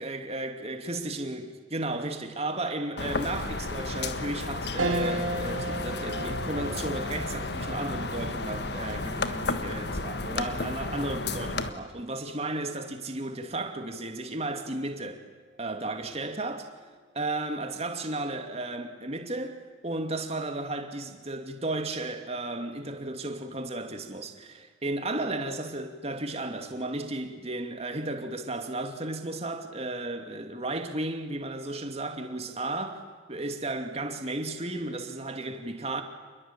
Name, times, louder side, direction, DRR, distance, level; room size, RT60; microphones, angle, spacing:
voice 1, 0.0-15.2 15.6-16.7 17.1-33.0 33.3-36.0, right 2 dB, 30° right, 2.6 m, -34 dB
sound 1, 3.0-11.7, left 3 dB, 55° left, 1.5 m, -33 dB
sound 2, 4.8-14.4 14.9-15.0 16.3-16.7, right 1 dB, 85° right, 3.0 m, -37 dB
28.5 x 21.5 x 8.9 m
head